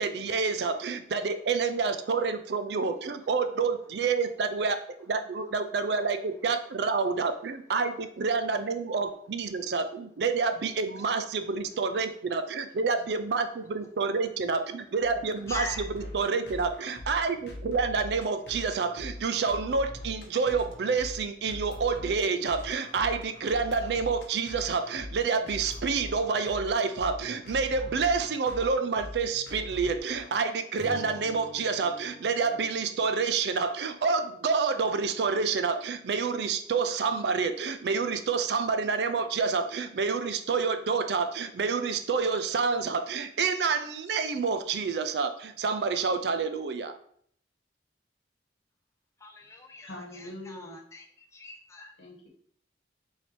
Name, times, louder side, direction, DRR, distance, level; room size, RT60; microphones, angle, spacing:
voice 1, 0.0-4.8 5.1-15.7 15.9-47.0, right 5 dB, 70° right, 0.4 m, -28 dB
sound 1, 15.0-30.4, left 1 dB, 70° left, 0.8 m, -42 dB
voice 2, 15.5-15.8 49.2-51.9, left 3 dB, 15° left, 0.5 m, -42 dB
Strum, 30.7-35.2, left 1 dB, 30° right, 0.8 m, -48 dB
voice 3, 49.8-50.8 52.0-52.3, left 1 dB, 85° left, 1.2 m, -43 dB
3.3 x 2.7 x 4.3 m
head